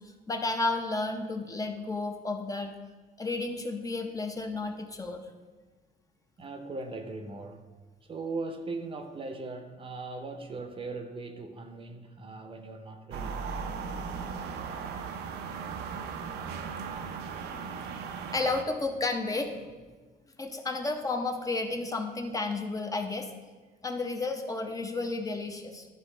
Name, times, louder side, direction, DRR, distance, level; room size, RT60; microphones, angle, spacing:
voice 1, 0.3-2.7 3.2-5.2 18.3-19.6 20.4-23.3 23.8-25.9, left 3 dB, 20° left, 0.7 m, -32 dB
voice 2, 6.4-7.6 8.1-13.4, right 3 dB, 30° right, 0.7 m, -39 dB
sound 1, 13.1-18.6, right 5 dB, 75° right, 0.6 m, -37 dB
11.5 x 4.0 x 3.3 m
cardioid pair, 110°, 17 cm